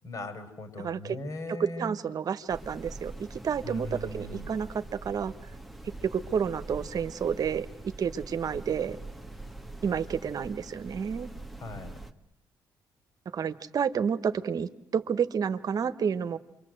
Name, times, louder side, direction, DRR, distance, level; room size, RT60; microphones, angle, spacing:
voice 1, 0.0-2.0 3.6-4.5 11.6-12.0, left 1 dB, 45° left, 8 dB, 5.1 m, -39 dB
voice 2, 0.8-1.2 1.5-5.3 6.0-7.7 8.0-9.0 9.8-11.3 13.3-16.4, right 7 dB, 50° right, 12 dB, 1.3 m, -30 dB
sound 1, 2.5-12.1, right 2 dB, ahead, 1.6 m, -43 dB
28.0 x 24.5 x 7.9 m, 0.86 s
cardioid pair, 85°, 8 cm